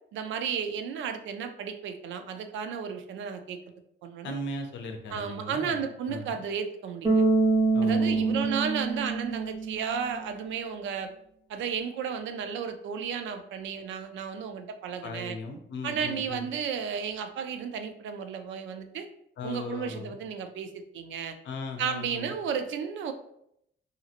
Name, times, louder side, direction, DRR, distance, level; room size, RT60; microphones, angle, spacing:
voice 1, 0.1-3.6 4.0-4.3 5.1-7.2 7.8-11.1 11.5-15.4 15.8-19.1 19.4-21.3 21.8-23.1, right 7 dB, 75° right, 8 dB, 0.4 m, -33 dB
voice 2, 4.2-5.8 6.1-6.4 7.7-8.5 15.0-16.5 19.4-20.2 21.4-22.3, left 2 dB, 65° left, 4 dB, 0.6 m, -38 dB
Bass guitar, 7.0-10.2, right 3 dB, 20° right, 0.8 m, -25 dB
2.8 x 2.7 x 2.4 m, 0.74 s
cardioid pair, 90°, 20 cm